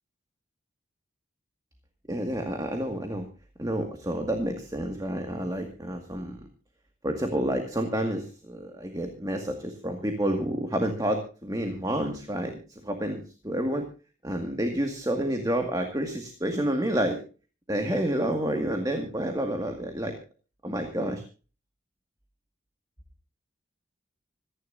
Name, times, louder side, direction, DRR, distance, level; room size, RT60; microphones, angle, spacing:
voice 1, 2.1-3.3 3.6-6.4 7.0-13.9 14.2-17.2 17.7-20.2 20.6-21.2, right 1 dB, 20° right, 4 dB, 2.0 m, -29 dB
26.5 x 11.0 x 2.7 m, 0.36 s
head